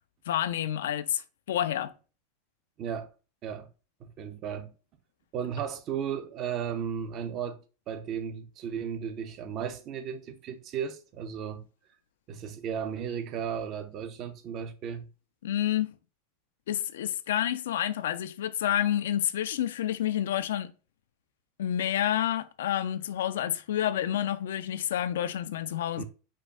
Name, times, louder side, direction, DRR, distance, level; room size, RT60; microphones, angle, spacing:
voice 1, 0.3-1.2 1.5-1.9 15.4-15.9 16.7-20.7 21.6-26.0, left 11 dB, 85° left, 0.4 m, -29 dB
voice 2, 2.8-3.1 3.4-3.7 4.0-4.7 5.3-7.6 7.9-11.6 12.3-15.1 26.0-26.1, right 8 dB, 40° right, 0.8 m, -35 dB
4.9 x 2.5 x 4.2 m
supercardioid pair, 125°, 0 cm